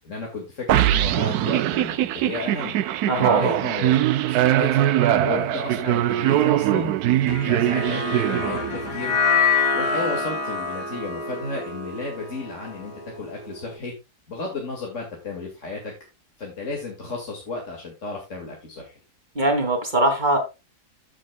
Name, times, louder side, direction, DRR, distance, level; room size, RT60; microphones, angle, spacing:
voice 1, 0.0-2.8 3.2-6.9 7.4-9.2 9.7-13.9 14.3-15.9 16.4-18.9, left 3 dB, 50° left, 0 dB, 2.3 m, -33 dB
sound 1, 0.7-9.0, right 12 dB, 75° right, 1.1 m, -21 dB
voice 2, 3.1-3.4 19.3-20.4, right 1 dB, 30° right, 4 dB, 2.3 m, -21 dB
sound 2, 7.3-13.7, left 4 dB, 85° left, 2.4 m, -26 dB
14.5 x 6.3 x 2.2 m, 0.26 s
omnidirectional pair, 1.7 m